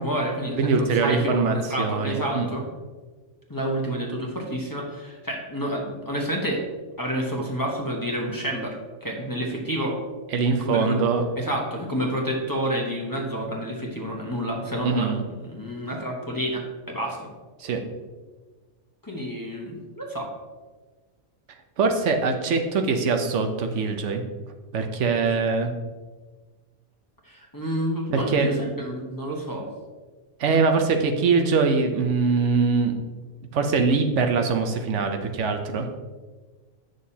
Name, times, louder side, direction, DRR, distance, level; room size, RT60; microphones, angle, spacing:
voice 1, 0.0-2.6 3.5-6.6 7.0-8.8 9.0-10.0 10.6-11.0 11.4-15.1 15.5-17.2 19.0-20.3 27.2-29.7, equal, 20° left, -2 dB, 1.0 m, -29 dB
voice 2, 0.6-2.5 10.3-11.2 14.8-15.2 17.6-17.8 21.8-24.2 24.7-25.7 28.1-28.5 30.4-32.9 33.5-35.9, right 4 dB, 75° right, 5 dB, 1.0 m, -22 dB
9.3 x 6.4 x 2.8 m, 1.3 s
omnidirectional pair, 1.3 m